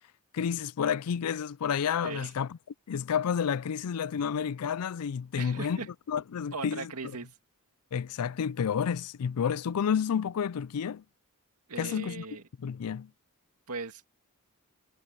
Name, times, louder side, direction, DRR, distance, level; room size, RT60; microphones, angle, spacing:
voice 1, 0.3-2.6 2.9-6.9 7.9-11.0 11.8-12.3 12.6-13.1, left 7 dB, 80° left, 0.4 m, -30 dB
voice 2, 5.4-5.9 6.5-7.3 11.7-12.4 13.7-14.1, right 4 dB, 90° right, 2.2 m, -38 dB
head